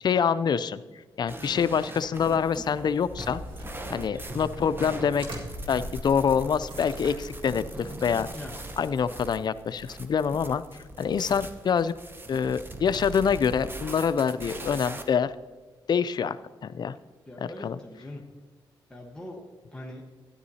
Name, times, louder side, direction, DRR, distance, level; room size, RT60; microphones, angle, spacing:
voice 1, 0.0-0.8 1.2-3.4 3.9-5.3 5.7-8.3 8.8-11.9 12.3-15.3 15.9-16.4 16.6-17.0 17.4-17.8, left 7 dB, 55° left, 14 dB, 0.4 m, -26 dB
sound 1, 1.3-15.0, right 2 dB, 25° right, 0.9 m, -40 dB
sound 2, 3.0-9.4, equal, 70° right, 1.9 m, -43 dB
voice 2, 8.8-9.2 17.3-18.2 18.9-19.4 19.7-20.0, left 1 dB, 10° left, -1 dB, 1.2 m, -42 dB
12.5 x 10.0 x 2.8 m, 1.4 s
cardioid pair, 70°, 9 cm